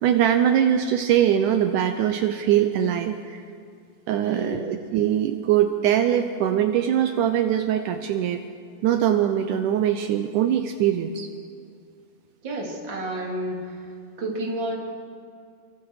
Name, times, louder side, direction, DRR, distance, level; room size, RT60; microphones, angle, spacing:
voice 1, 0.0-3.4 4.1-8.4 8.8-11.3, right 10 dB, 85° right, 7 dB, 1.8 m, -22 dB
voice 2, 4.2-4.7 12.4-13.8 14.2-14.7, right 1 dB, 30° right, -2 dB, 3.7 m, -30 dB
30.0 x 23.5 x 4.9 m, 2.3 s
omnidirectional pair, 4.7 m